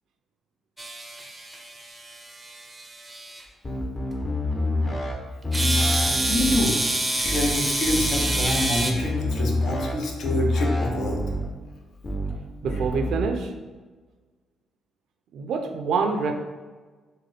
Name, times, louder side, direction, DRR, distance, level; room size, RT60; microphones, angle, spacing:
sound 1, 0.8-3.4 5.5-8.9, right 1 dB, 15° right, 0.5 m, -27 dB
sound 2, 3.6-5.1 5.4-6.6 7.2-7.5 7.8-9.9 10.2-11.4 12.0-12.3 12.6-13.2, left 1 dB, 30° left, 0.7 m, -27 dB
voice 1, 5.9-6.8 7.1-11.2, left 1 dB, 70° left, 0 dB, 0.7 m, -27 dB
voice 2, 12.6-13.5 15.3-16.3, right 5 dB, 75° right, 5 dB, 0.4 m, -26 dB
3.9 x 2.1 x 3.2 m, 1.3 s
cardioid pair, 90°, 0 cm